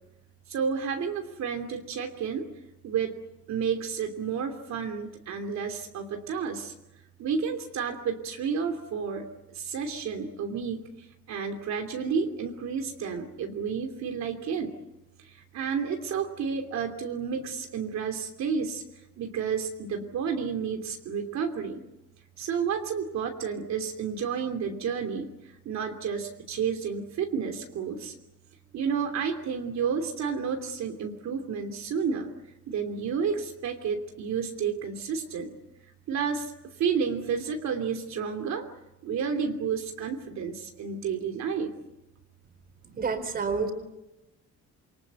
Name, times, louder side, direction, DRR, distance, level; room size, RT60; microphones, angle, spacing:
voice 1, 0.5-2.5 2.8-3.2 3.5-6.7 7.2-14.7 15.2-18.8 19.2-21.8 22.4-25.3 25.6-28.1 28.7-32.3 32.7-35.6 36.1-38.7 39.0-41.7, right 6 dB, 65° right, 4 dB, 3.0 m, -31 dB
voice 2, 43.0-43.7, right 5 dB, 30° right, 9 dB, 4.3 m, -28 dB
28.0 x 25.0 x 8.3 m, 0.93 s
cardioid pair, 170°, 30 cm